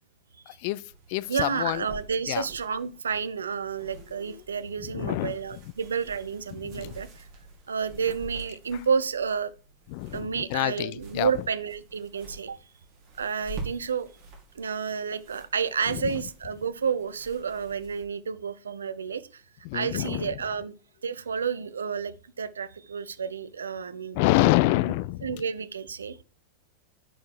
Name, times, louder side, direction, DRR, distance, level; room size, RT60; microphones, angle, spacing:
voice 1, 0.5-1.8 2.3-2.4 4.3-4.4 4.9-5.3 6.6-6.9 9.9-11.3 15.9-16.1 19.6-20.3 24.2-25.4, left 18 dB, 45° left, 0.3 m, -27 dB
sound 1, 0.9-18.0, right 3 dB, 50° right, 2.5 m, -47 dB
voice 2, 1.3-7.3 7.7-9.5 10.1-12.6 13.2-14.1 14.5-19.4 19.7-20.7 21.0-24.2 25.2-26.2, right 6 dB, 70° right, 0.5 m, -30 dB
9.9 x 4.7 x 4.4 m
figure-of-eight pair, 90°, 0 cm